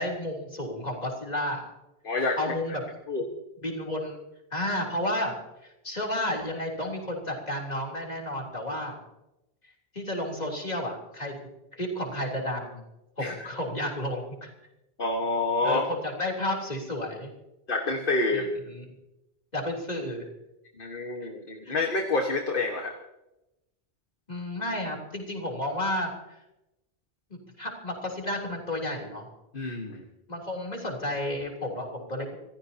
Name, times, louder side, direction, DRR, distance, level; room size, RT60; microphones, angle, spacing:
voice 1, 0.0-1.7 2.4-2.8 3.6-4.2 4.5-5.3 5.8-9.0 9.9-11.4 11.8-12.8 13.2-14.5 15.6-17.3 18.3-18.8 19.5-20.2 21.6-21.8 24.3-26.4 27.6-29.3 30.3-32.3, left 1 dB, 40° left, 0 dB, 3.6 m, -32 dB
voice 2, 2.0-2.5 3.1-3.2 13.2-13.3 15.0-15.8 17.7-18.5 20.8-23.0 29.5-30.0, left 3 dB, 60° left, 3 dB, 1.7 m, -28 dB
26.5 x 15.5 x 2.9 m, 0.91 s
omnidirectional pair, 1.0 m